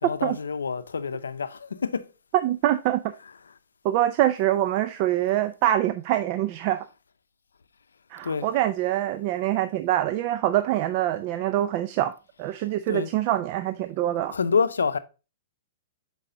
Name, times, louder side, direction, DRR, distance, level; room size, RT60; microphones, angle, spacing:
voice 1, 0.0-2.1 8.2-8.5 12.9-13.1 14.3-15.0, left 5 dB, 90° left, 0.5 m, -27 dB
voice 2, 2.4-3.0 3.8-6.9 8.1-12.1 12.4-14.3, right 13 dB, 45° right, 0.4 m, -24 dB
6.7 x 4.8 x 3.7 m
hypercardioid pair, 125°, 0 cm